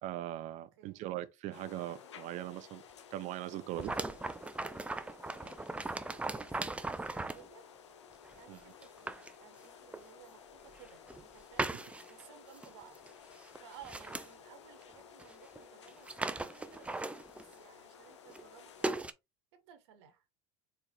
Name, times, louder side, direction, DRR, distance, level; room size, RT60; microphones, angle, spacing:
voice 1, 0.0-2.8 3.1-3.9 8.5-8.6, right 14 dB, 55° right, 0.6 m, -40 dB
voice 2, 0.5-1.1 4.8-7.7 8.3-11.7 12.1-13.0 13.5-19.0 19.5-20.2, right 9 dB, 75° right, 1.1 m, -58 dB
sound 1, 1.5-18.9, left 7 dB, 90° left, 0.8 m, -55 dB
sound 2, 3.8-7.5 8.3-8.4 8.8-9.3 9.9-10.0 10.8-11.2 11.6-12.2 12.6-12.7 13.0-13.1 13.4-14.3 15.2-15.3 15.6-15.7 15.9-17.5 18.3-18.4 18.8-19.1, right 2 dB, 10° right, 0.5 m, -38 dB
4.4 x 3.6 x 3.3 m
hypercardioid pair, 80°, 14 cm